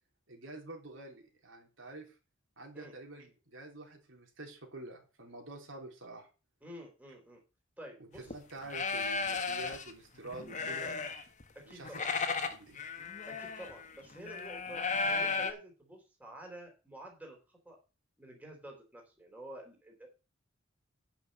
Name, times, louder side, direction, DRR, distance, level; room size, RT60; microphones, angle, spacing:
voice 1, 0.3-2.2 2.6-6.3 8.0-11.1 11.7-12.8, right 2 dB, 70° right, 2 dB, 3.5 m, -48 dB
voice 2, 6.6-7.4 7.8-8.3 11.5-12.1 13.3-14.8 15.1-17.8 18.2-20.1, right 1 dB, 10° right, 0 dB, 3.7 m, -49 dB
sound 1, 8.1-8.3 8.7-9.9 10.2-11.4 11.7-15.5, left 4 dB, 40° left, 1.4 m, -35 dB
9.4 x 6.0 x 7.4 m, 0.32 s
head